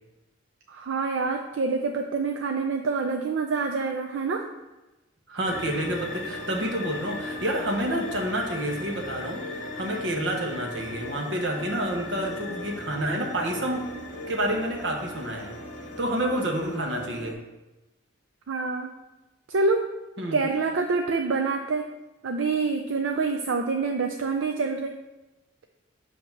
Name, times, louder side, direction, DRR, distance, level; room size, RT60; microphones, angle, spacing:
voice 1, 0.7-4.4 18.5-18.9 19.5-19.8 20.3-21.9 22.2-24.9, right 4 dB, 80° right, 3 dB, 0.4 m, -26 dB
voice 2, 5.3-13.9 14.3-15.5 16.0-17.4 20.2-20.4, right 1 dB, 65° right, 1 dB, 1.1 m, -29 dB
sound 1, 5.5-17.3, left 2 dB, 40° left, 0.9 m, -37 dB
7.6 x 2.8 x 5.9 m, 1.0 s
head